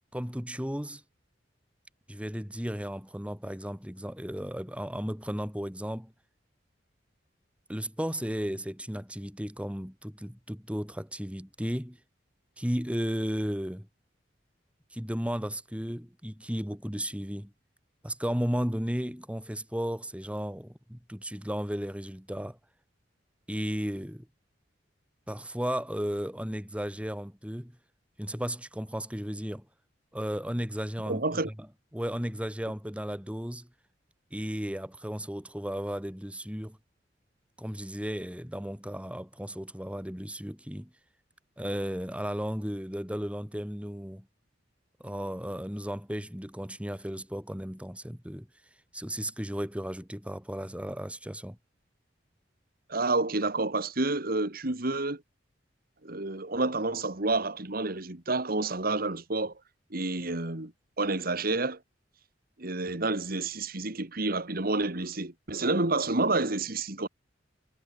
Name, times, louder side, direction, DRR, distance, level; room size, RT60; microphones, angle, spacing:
voice 1, 0.1-1.0 2.1-6.1 7.7-12.0 12.6-13.9 14.9-17.5 18.0-22.6 23.5-24.3 25.3-27.7 28.2-29.7 30.1-31.2 31.9-33.7 34.3-36.8 37.6-40.9 41.6-44.3 45.0-48.5 48.9-51.6, equal, 5° right, 4.4 m, -34 dB
voice 2, 31.1-31.5 52.9-55.2 56.0-59.5 59.9-60.7 61.0-61.8 62.6-67.1, right 2 dB, 55° right, 2.4 m, -29 dB
head